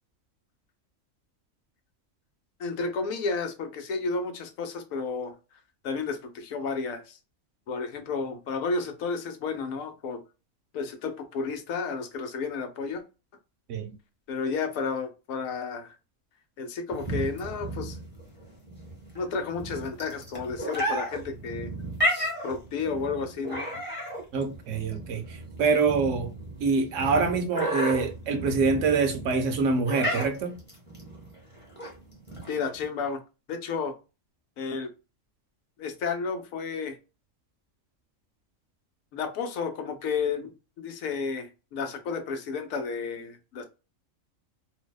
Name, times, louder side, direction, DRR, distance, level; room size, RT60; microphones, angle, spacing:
voice 1, 2.6-5.3 5.8-7.2 7.7-10.2 10.7-13.0 14.3-15.9 16.6-18.0 19.1-21.7 22.4-23.7 32.5-33.2 33.5-33.9 34.6-34.9 35.8-37.0 39.1-43.6, left 4 dB, 90° left, 1.0 m, -32 dB
sound 1, 16.9-32.9, equal, 10° left, 0.8 m, -33 dB
voice 2, 24.3-26.3 26.6-30.6, right 4 dB, 70° right, 0.9 m, -25 dB
2.7 x 2.1 x 2.2 m
omnidirectional pair, 1.4 m